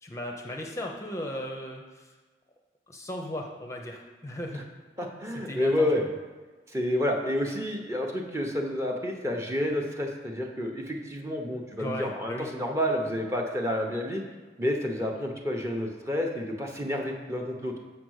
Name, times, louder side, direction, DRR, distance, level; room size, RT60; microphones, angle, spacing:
voice 1, 0.0-2.1 2.9-4.6 5.5-6.0 11.8-12.5, left 1 dB, 15° left, 1 dB, 0.6 m, -36 dB
voice 2, 5.0-6.1 6.7-14.2 14.6-17.7, left 1 dB, 15° right, 1 dB, 0.8 m, -29 dB
6.9 x 5.1 x 6.3 m, 1.4 s
head